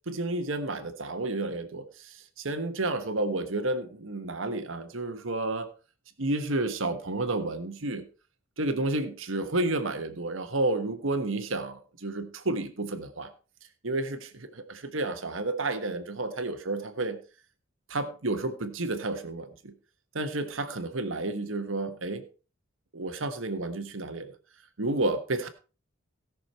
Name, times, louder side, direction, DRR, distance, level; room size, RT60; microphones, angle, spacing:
voice 1, 0.1-5.7 6.2-8.0 8.6-13.3 13.8-17.2 17.9-19.7 20.1-22.2 22.9-24.3 24.8-25.5, right 2 dB, 75° right, 8 dB, 1.4 m, -31 dB
17.5 x 6.3 x 4.4 m, 0.35 s
head